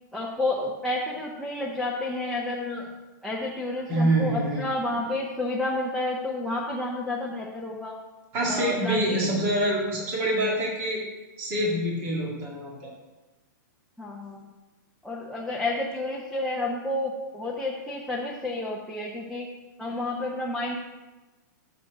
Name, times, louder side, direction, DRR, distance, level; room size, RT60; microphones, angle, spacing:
voice 1, 0.1-2.9 3.2-8.0 8.5-9.2 14.0-14.5 15.0-19.5 19.8-20.8, left 2 dB, ahead, -5 dB, 0.4 m, -30 dB
voice 2, 3.9-4.6 8.3-11.0 11.4-12.9, right 1 dB, 20° right, -4 dB, 1.8 m, -26 dB
6.4 x 5.6 x 6.5 m, 1.1 s
hypercardioid pair, 180°, 11 cm